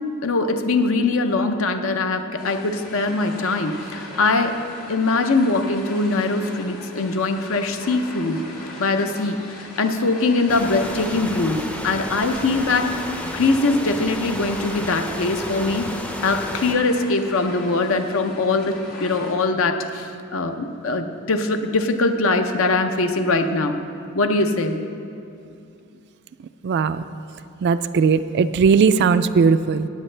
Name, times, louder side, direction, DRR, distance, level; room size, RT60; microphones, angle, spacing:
voice 1, 0.2-4.6 4.9-8.4 8.8-9.4 9.8-13.1 13.3-15.9 16.2-23.8 24.1-24.8, left 3 dB, 65° left, 7 dB, 0.7 m, -22 dB
sound 1, 2.4-19.3, left 1 dB, 85° left, 1.7 m, -40 dB
sound 2, 10.5-16.8, left 1 dB, 5° left, 0.5 m, -32 dB
voice 2, 26.6-27.0 27.6-29.9, right 5 dB, 50° right, 12 dB, 0.3 m, -18 dB
15.5 x 9.0 x 3.3 m, 2.5 s
head